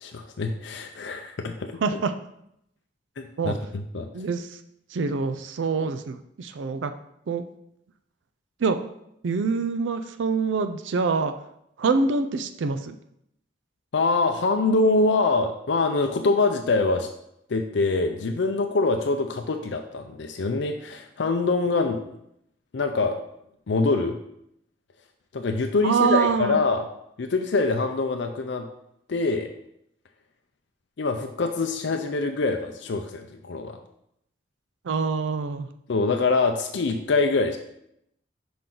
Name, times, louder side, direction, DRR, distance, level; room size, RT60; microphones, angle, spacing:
voice 1, 0.0-2.0 3.2-4.1 13.9-17.1 17.5-22.0 22.7-23.2 23.7-24.2 25.3-26.9 27.2-28.7 29.1-29.5 31.0-33.8 35.9-37.6, left 3 dB, 75° left, 4 dB, 0.5 m, -24 dB
voice 2, 1.8-2.1 3.4-3.5 4.1-4.5 4.9-6.9 7.3-7.4 8.6-8.8 9.2-11.3 11.8-12.9 25.8-26.6 34.9-35.7, right 4 dB, 85° right, 9 dB, 0.4 m, -25 dB
5.9 x 5.2 x 3.8 m, 0.76 s
head